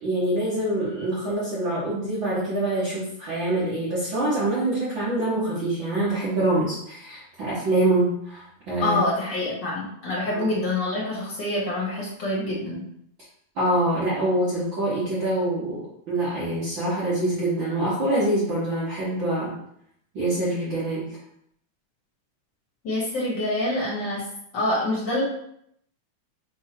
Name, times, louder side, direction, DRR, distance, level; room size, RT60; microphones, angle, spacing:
voice 1, 0.0-9.0 10.4-10.6 13.6-19.5 20.1-21.1, right 1 dB, 45° right, -9 dB, 2.0 m, -25 dB
voice 2, 8.8-12.8 22.8-24.2 24.5-25.2, left 1 dB, 40° left, -5 dB, 2.3 m, -26 dB
6.3 x 3.7 x 4.6 m, 0.72 s
omnidirectional pair, 3.5 m